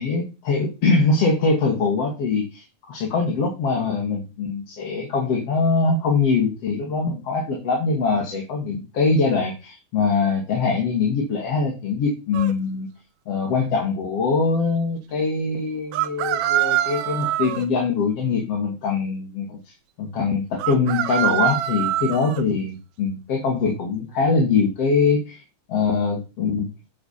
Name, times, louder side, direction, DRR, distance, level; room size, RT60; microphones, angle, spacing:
voice 1, 0.0-12.9 13.3-19.6 20.0-25.4 25.7-26.7, left 4 dB, 55° left, 0 dB, 3.2 m, -23 dB
sound 1, 12.3-12.5 15.9-17.7 20.6-22.4, right 13 dB, 75° right, 1.4 m, -24 dB
9.0 x 6.4 x 7.1 m, 0.29 s
omnidirectional pair, 3.5 m